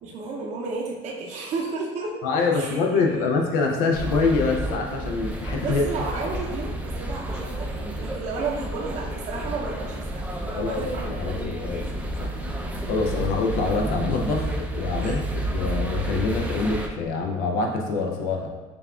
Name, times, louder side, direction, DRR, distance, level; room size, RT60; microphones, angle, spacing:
voice 1, 0.0-2.2 2.5-3.1 5.5-11.0 15.0-15.3, right 3 dB, 50° right, -2 dB, 0.6 m, -32 dB
voice 2, 2.2-5.8 10.6-10.8 11.2-12.3 12.9-18.5, left 4 dB, 75° left, 1 dB, 0.5 m, -25 dB
sound 1, 3.9-16.9, right 1 dB, 10° right, 0.4 m, -31 dB
6.8 x 2.3 x 2.3 m, 1.2 s
supercardioid pair, 100°, 15 cm